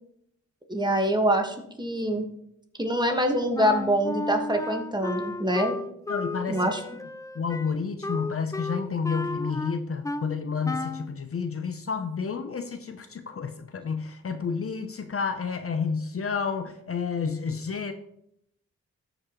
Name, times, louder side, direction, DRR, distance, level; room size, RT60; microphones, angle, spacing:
voice 1, 0.7-2.3 2.8-5.8 6.5-6.8, equal, 15° right, 3 dB, 1.6 m, -25 dB
Wind instrument woodwind instrument, 3.5-10.3 10.6-11.1, left 2 dB, 10° left, 0.3 m, -33 dB
voice 2, 6.1-6.7 7.3-17.9, left 5 dB, 45° left, 8 dB, 0.7 m, -30 dB
13.0 x 5.2 x 3.1 m, 0.74 s
cardioid pair, 60°, 31 cm